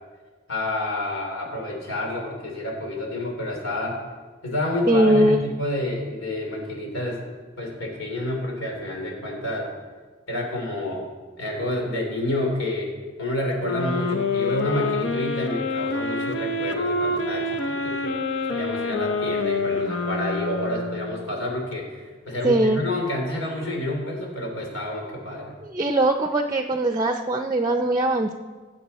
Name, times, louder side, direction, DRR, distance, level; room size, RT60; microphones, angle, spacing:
voice 1, 0.5-4.0 4.4-7.2 7.6-9.7 10.3-11.1 11.4-12.9 13.2-18.2 18.5-22.0 22.2-25.5, left 1 dB, 90° left, 0 dB, 3.3 m, -29 dB
voice 2, 4.9-5.4 22.4-22.8 25.7-28.3, right 1 dB, 20° right, 6 dB, 0.5 m, -20 dB
sound 1, 13.6-21.3, left 3 dB, 70° left, 0.9 m, -27 dB
19.5 x 7.9 x 4.2 m, 1.4 s
head